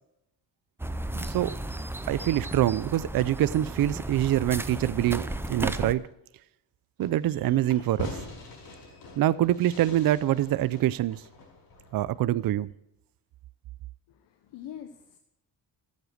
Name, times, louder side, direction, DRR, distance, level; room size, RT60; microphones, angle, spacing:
sound 1, 0.8-5.9, right 1 dB, 5° right, 0.5 m, -34 dB
voice 1, 1.1-1.5 2.1-5.2 5.5-6.0 7.0-8.2 9.2-11.2 11.9-12.7, right 13 dB, 55° right, 0.5 m, -25 dB
Fireworks, 7.0-12.2, left 3 dB, 60° left, 5.4 m, -44 dB
voice 2, 14.1-15.2, left 9 dB, 85° left, 1.1 m, -44 dB
14.0 x 8.1 x 6.3 m
cardioid pair, 145°, 42 cm